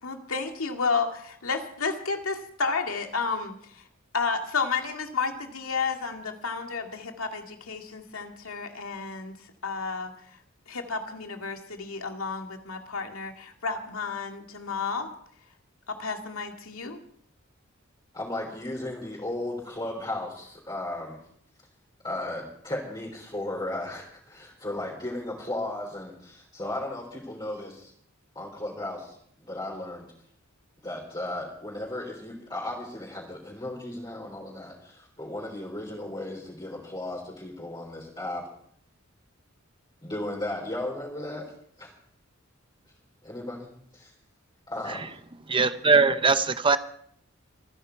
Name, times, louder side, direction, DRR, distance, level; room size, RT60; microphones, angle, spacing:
voice 1, 0.0-3.8 4.1-9.3 9.6-10.1 10.7-15.1 16.0-17.0, left 4 dB, 85° left, 2.2 m, -31 dB
voice 2, 18.1-21.2 22.0-27.9 28.4-29.2 29.4-30.1 30.8-38.4 40.0-41.5 41.8-41.9 43.2-44.1 44.7-45.1, left 1 dB, 20° left, 3.7 m, -35 dB
voice 3, 45.5-46.8, right 4 dB, 25° right, 0.7 m, -21 dB
26.0 x 10.0 x 4.6 m
head